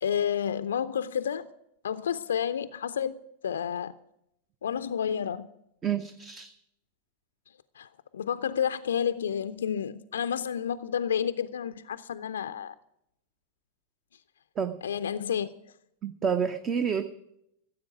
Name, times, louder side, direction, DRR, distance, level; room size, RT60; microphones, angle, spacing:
voice 1, 0.0-1.5 1.8-3.9 4.6-5.5 7.8-12.7 14.8-15.5, left 8 dB, 65° left, 12 dB, 0.4 m, -30 dB
voice 2, 5.8-6.5 14.6-14.8 16.0-17.0, right 7 dB, 25° right, 10 dB, 0.7 m, -29 dB
15.0 x 7.9 x 8.7 m, 0.79 s
figure-of-eight pair, 90°, 0 cm